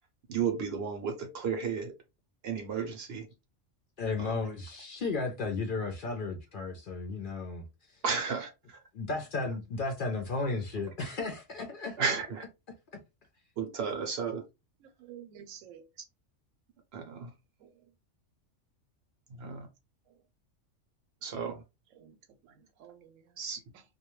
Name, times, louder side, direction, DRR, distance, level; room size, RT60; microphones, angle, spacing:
voice 1, 0.3-1.9 2.4-3.3 4.2-4.3 8.0-8.8 12.0-12.4 13.6-14.4 16.9-17.3 19.4-19.7 21.2-21.6 23.4-23.6, right 6 dB, 65° right, 0.7 m, -33 dB
voice 2, 4.0-8.0 8.9-12.2 12.9-13.0, left 3 dB, 60° left, 0.5 m, -34 dB
voice 3, 14.8-15.9 17.6-17.8 20.1-20.2 21.9-23.4 23.7-23.8, right 9 dB, 85° right, 1.0 m, -52 dB
2.2 x 2.2 x 2.9 m
omnidirectional pair, 1.3 m